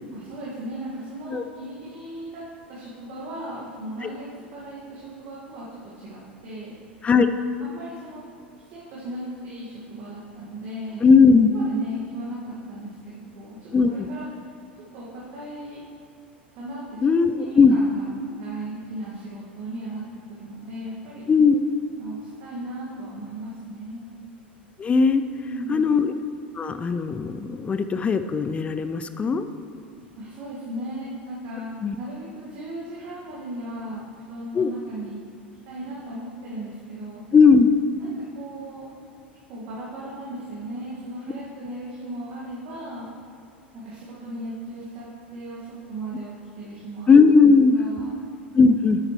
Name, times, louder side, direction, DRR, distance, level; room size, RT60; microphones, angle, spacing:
voice 1, 0.1-2.4 2.7-7.0 7.6-8.3 8.7-11.1 11.5-14.3 14.9-15.8 16.6-17.0 17.4-18.1 18.4-20.0 20.3-21.3 22.0-24.1 25.3-25.8 30.2-31.7 32.0-35.2 35.6-37.3 38.0-38.9 39.5-43.1 43.7-47.1 47.7-48.2, right 1 dB, 45° right, -7 dB, 1.9 m, -37 dB
voice 2, 11.0-11.5 13.7-14.1 17.0-17.8 21.3-21.6 24.8-25.2 25.7-26.1 26.6-29.5 31.8-32.0 34.6-34.7 37.3-37.7 47.1-47.8 48.6-49.0, left 5 dB, 20° left, 9 dB, 0.4 m, -17 dB
10.5 x 8.7 x 3.1 m, 2.2 s
figure-of-eight pair, 80°, 6 cm